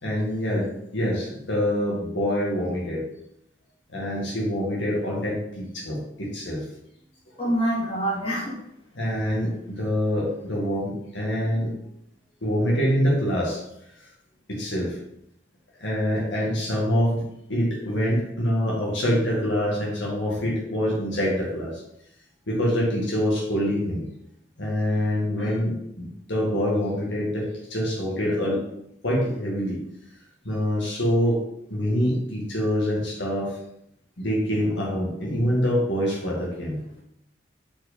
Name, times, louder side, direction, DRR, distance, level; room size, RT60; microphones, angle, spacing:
voice 1, 0.0-3.0 3.9-6.6 8.9-11.7 12.4-13.6 14.0-14.1 14.5-15.0 15.8-17.2 17.5-21.8 22.5-24.1 24.6-28.6 29.0-29.8 30.4-31.4 31.7-33.6 34.2-36.8, equal, 70° left, -4 dB, 1.9 m, -25 dB
voice 2, 7.4-8.6, right 1 dB, 30° left, -6 dB, 2.3 m, -25 dB
5.7 x 4.6 x 5.1 m, 0.77 s
head